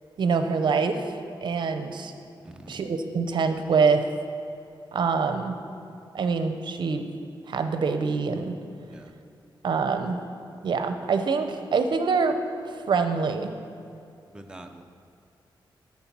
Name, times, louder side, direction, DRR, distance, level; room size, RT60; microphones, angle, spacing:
voice 1, 0.2-1.1 1.4-2.1 2.7-4.0 4.9-5.6 6.1-7.0 7.5-8.5 9.6-10.2 10.6-12.3 12.9-13.5, right 5 dB, 60° right, 7 dB, 0.6 m, -25 dB
voice 2, 2.4-2.8 8.9-9.1 14.3-14.8, right 1 dB, 10° right, 4 dB, 0.5 m, -44 dB
9.2 x 4.4 x 5.9 m, 2.6 s
wide cardioid pair, 115°, 9 cm